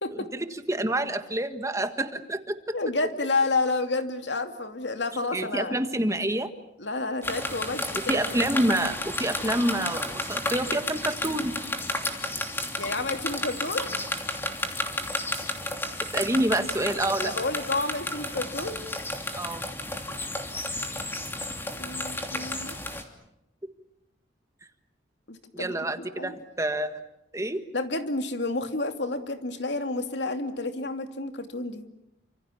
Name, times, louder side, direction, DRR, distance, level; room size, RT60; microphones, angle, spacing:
voice 1, 0.3-2.6 5.3-6.5 8.1-11.6 16.1-17.3 19.3-19.6 25.5-27.0 27.3-27.6, right 1 dB, 15° right, 9 dB, 1.6 m, -27 dB
voice 2, 2.7-5.8 6.8-8.2 12.8-13.9 17.2-18.8 21.8-22.8 25.3-26.3 27.7-31.8, left 3 dB, 70° left, 7 dB, 2.7 m, -30 dB
sound 1, 7.2-23.0, left 1 dB, 10° left, 2.9 m, -32 dB
30.0 x 26.5 x 7.2 m, 0.83 s
head